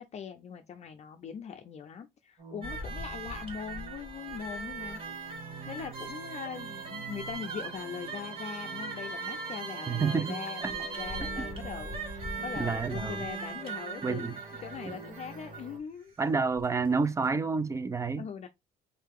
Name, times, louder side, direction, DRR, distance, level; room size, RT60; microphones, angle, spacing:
voice 1, 0.0-14.3 14.6-16.1 18.2-18.5, left 7 dB, 40° left, 0.5 m, -41 dB
sound 1, 2.4-15.8, right 5 dB, 50° right, 1.6 m, -46 dB
sound 2, 2.6-15.7 16.6-16.7 17.1-17.2, right 3 dB, 35° right, 1.7 m, -40 dB
Bowed string instrument, 5.9-11.3, right 4 dB, 70° right, 1.7 m, -44 dB
voice 2, 9.9-10.7 12.6-13.2 14.0-14.3 14.9-15.0 16.2-18.2, right 4 dB, 20° right, 0.5 m, -29 dB
4.0 x 2.8 x 3.6 m
cardioid pair, 110°, 17 cm